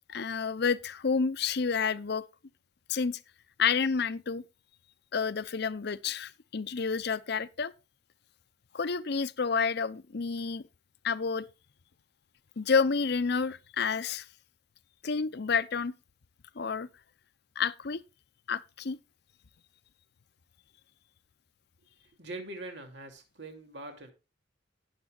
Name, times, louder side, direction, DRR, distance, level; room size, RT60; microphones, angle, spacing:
voice 1, 0.1-2.2 2.9-3.2 3.6-4.4 5.1-7.7 8.7-10.6 11.0-11.5 12.6-14.3 15.0-15.9 16.6-16.9 17.6-18.0 18.5-19.0, left 5 dB, 60° left, 0.6 m, -29 dB
voice 2, 22.2-24.1, right 2 dB, 65° right, 2.6 m, -42 dB
18.0 x 7.5 x 2.4 m
head